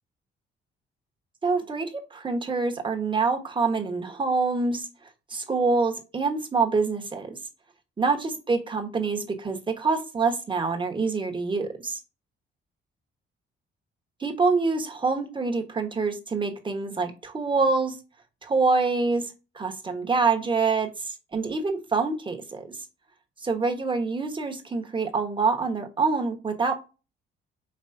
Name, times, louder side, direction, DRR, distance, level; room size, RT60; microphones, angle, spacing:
voice 1, 1.4-4.9 5.3-7.4 8.0-12.0 14.2-18.0 18.4-22.8 23.4-26.7, right 4 dB, 25° right, 1.1 m, -26 dB
5.5 x 3.0 x 2.6 m
cardioid pair, 90°, 20 cm